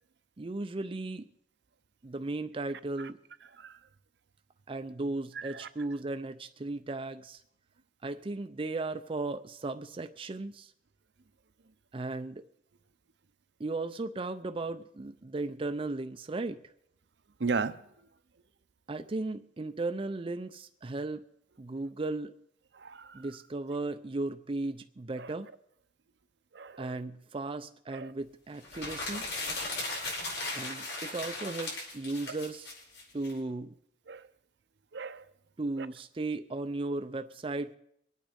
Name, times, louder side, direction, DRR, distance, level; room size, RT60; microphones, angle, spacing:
voice 1, 0.4-1.3 2.0-3.2 4.7-7.4 8.0-10.7 11.9-12.4 13.6-16.6 18.9-21.2 21.6-22.4 23.1-25.5 26.8-29.2 30.5-32.7 33.1-33.8 35.6-37.8, right 2 dB, 30° right, 8 dB, 0.5 m, -36 dB
voice 2, 5.4-5.7 17.4-17.7 22.7-23.2 25.2-25.3 26.5-27.0 27.9-28.1 30.0-30.1 34.1-34.2 34.9-35.2 35.8-35.9, right 4 dB, 70° right, 12 dB, 0.7 m, -36 dB
sound 1, 28.6-33.3, left 2 dB, 65° left, 5.2 m, -37 dB
23.5 x 8.9 x 5.2 m, 0.73 s
head